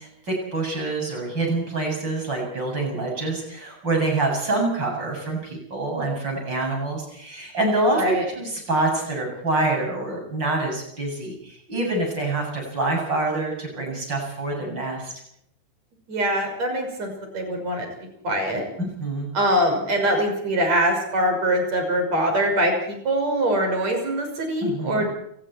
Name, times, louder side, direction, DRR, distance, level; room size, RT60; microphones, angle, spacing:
voice 1, 0.0-15.1 18.8-19.3 24.6-25.1, right 2 dB, 25° right, 1 dB, 8.3 m, -26 dB
voice 2, 7.9-8.3 16.1-18.6 19.3-25.1, right 1 dB, 40° right, 3 dB, 7.1 m, -23 dB
29.0 x 19.5 x 4.6 m, 0.73 s
omnidirectional pair, 4.6 m